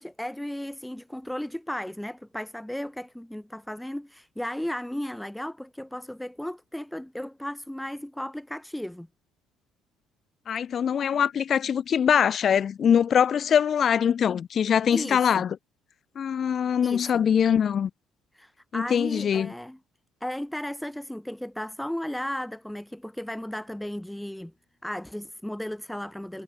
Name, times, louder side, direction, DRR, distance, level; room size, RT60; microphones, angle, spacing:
voice 1, 0.0-9.1 14.9-15.5 16.8-17.3 18.3-19.8 20.2-24.5 24.8-26.4, left 1 dB, 5° left, 1.3 m, -35 dB
voice 2, 10.5-15.6 16.2-17.9 18.7-19.5, left 8 dB, 45° left, 1.1 m, -23 dB
cardioid pair, 100°, 0 cm